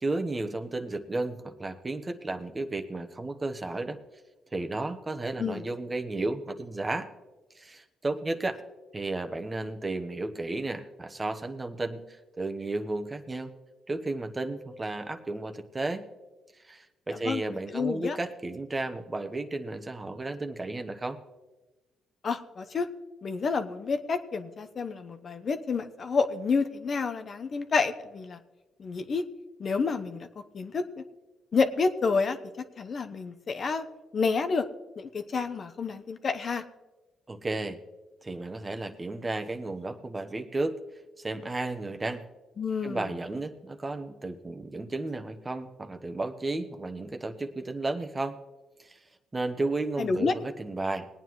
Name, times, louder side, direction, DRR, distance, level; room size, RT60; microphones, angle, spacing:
voice 1, 0.0-4.0 4.5-7.1 7.5-8.6 8.9-13.5 13.9-16.0 16.6-21.2 37.3-37.8 38.2-40.8 41.2-42.2 42.8-48.4 48.8-49.0 49.3-51.1, right 2 dB, 25° right, 6 dB, 1.0 m, -33 dB
voice 2, 17.2-18.2 22.2-22.9 23.2-28.4 28.8-29.2 29.6-30.3 30.5-31.0 31.5-32.4 32.8-33.8 34.1-34.6 35.0-36.6 42.6-43.1 50.0-50.3, left 4 dB, 45° left, 8 dB, 0.8 m, -29 dB
20.5 x 9.3 x 3.1 m, 1.1 s
cardioid pair, 90°, 0 cm